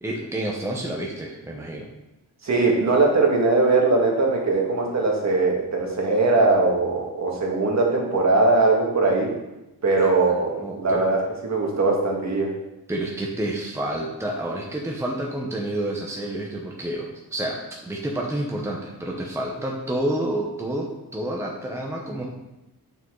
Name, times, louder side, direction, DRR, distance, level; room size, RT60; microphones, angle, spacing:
voice 1, 0.0-1.9 10.0-11.0 12.9-22.3, right 1 dB, 5° right, -1 dB, 0.9 m, -29 dB
voice 2, 2.4-9.3 9.8-12.5, right 3 dB, 45° right, -1 dB, 1.8 m, -20 dB
8.5 x 6.1 x 3.8 m, 0.94 s
wide cardioid pair, 155°, 38 cm